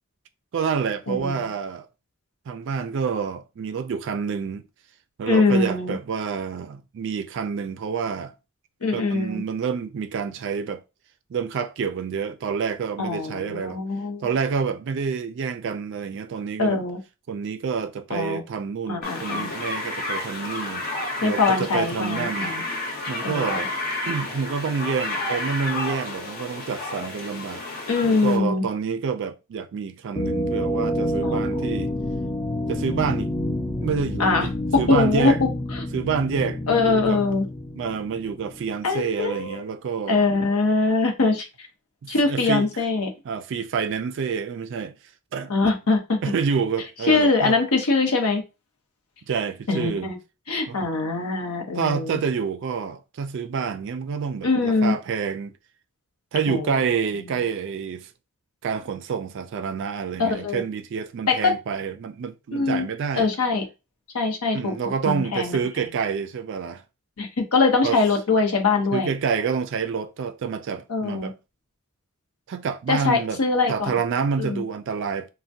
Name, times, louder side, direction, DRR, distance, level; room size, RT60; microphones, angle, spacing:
voice 1, 0.5-1.9 2.5-4.6 5.2-8.3 8.9-10.8 11.3-13.8 14.2-16.8 17.3-20.9 21.2-22.5 23.1-23.7 24.1-27.6 28.0-31.9 32.7-33.3 33.8-34.5 34.8-35.4 35.9-37.2 37.8-40.3 42.0-42.7 43.2-44.9 45.3-45.5 46.2-47.6 49.3-50.1 50.7-50.8 51.7-55.5 56.3-58.1 58.6-63.3 64.5-66.8 67.8-68.0 68.9-71.4 72.5-73.4 73.7-75.3, right 6 dB, 55° right, 0.3 m, -28 dB
voice 2, 1.1-1.4 5.3-6.0 8.8-9.4 13.0-14.3 16.6-17.0 18.1-18.4 18.9-19.5 21.2-22.6 23.2-23.7 27.9-28.6 31.2-31.9 34.2-35.9 36.7-37.5 38.8-39.6 40.1-41.5 42.1-43.1 45.5-46.2 47.1-48.4 49.7-50.2 50.5-52.2 54.4-55.0 56.5-56.7 60.2-60.6 61.3-61.6 62.5-62.9 63.1-63.7 64.1-64.7 65.1-65.7 67.2-69.1 70.9-71.3 72.9-74.0 74.4-74.6, left 3 dB, 80° left, 0.8 m, -23 dB
sound 1, 19.0-28.4, left 2 dB, 45° left, 0.8 m, -31 dB
sound 2, 30.2-38.8, left 1 dB, 10° left, 0.5 m, -28 dB
3.3 x 2.1 x 2.6 m
head